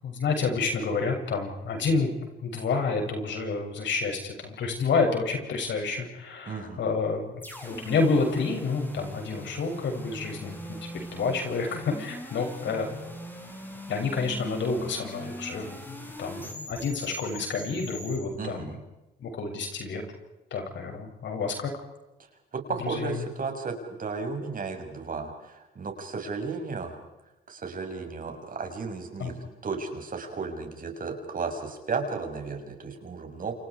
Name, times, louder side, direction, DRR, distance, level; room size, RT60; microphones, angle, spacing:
voice 1, 0.0-10.6 11.1-13.0 13.9-18.7 19.2-20.0 20.5-21.7 22.8-23.2 29.2-29.5, left 4 dB, 65° left, 3 dB, 7.7 m, -29 dB
voice 2, 6.5-6.8 18.4-18.8 22.5-27.0 27.5-33.5, right 4 dB, 45° right, 4 dB, 6.3 m, -34 dB
sound 1, 7.4-18.2, equal, 10° left, 7.6 m, -41 dB
28.5 x 28.5 x 4.9 m, 1.0 s
cardioid pair, 90°, 20 cm